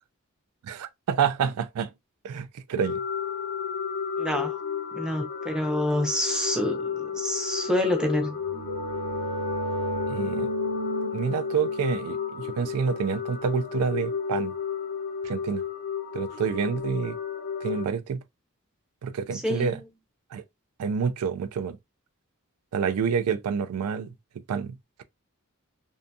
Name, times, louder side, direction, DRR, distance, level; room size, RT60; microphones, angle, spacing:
voice 1, 0.6-1.9 2.2-3.0 10.1-10.5 11.1-14.5 15.2-15.6 16.1-17.2 17.6-18.2 19.0-19.8 20.3-20.4 20.8-21.8 22.7-24.1 24.5-25.0, right 6 dB, 90° right, 0.4 m, -28 dB
sound 1, 2.8-17.9, left 6 dB, 45° left, 0.4 m, -32 dB
voice 2, 4.2-4.6 4.9-8.4 19.3-19.8, left 1 dB, 5° right, 0.5 m, -27 dB
sound 2, 8.1-13.6, right 1 dB, 55° right, 0.8 m, -34 dB
2.7 x 2.6 x 2.2 m
head